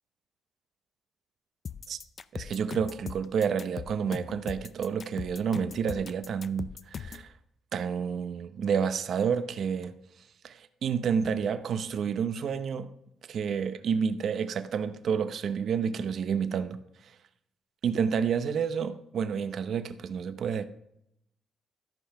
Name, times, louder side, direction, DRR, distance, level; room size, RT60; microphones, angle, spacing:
sound 1, 1.6-7.3, left 6 dB, 45° left, 0.5 m, -40 dB
voice 1, 2.3-7.3 7.7-9.9 10.4-12.9 13.3-16.8 17.8-20.7, right 7 dB, 60° right, 0.8 m, -29 dB
13.5 x 5.5 x 5.8 m
cardioid pair, 90°, 0 cm